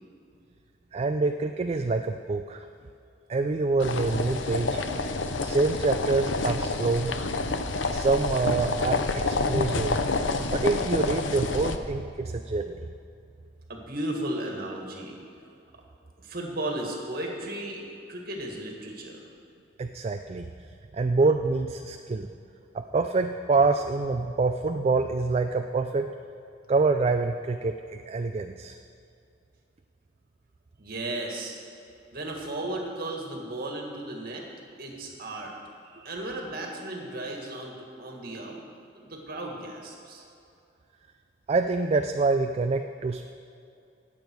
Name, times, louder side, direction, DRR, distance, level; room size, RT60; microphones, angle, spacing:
voice 1, 0.9-2.7 3.3-4.8 5.4-7.3 7.9-10.0 10.5-12.9 19.8-20.5 20.9-22.3 22.7-26.1 26.7-28.7 41.5-43.3, right 3 dB, 30° right, 6 dB, 0.3 m, -26 dB
sound 1, 3.8-11.8, left 3 dB, 75° left, 0.7 m, -28 dB
voice 2, 13.7-15.2 16.2-17.8 18.1-19.2 30.8-31.6 32.1-34.5 34.8-35.5 35.8-38.6 39.0-40.2, right 1 dB, 50° right, 0 dB, 1.9 m, -35 dB
18.0 x 7.2 x 4.6 m, 2.6 s
head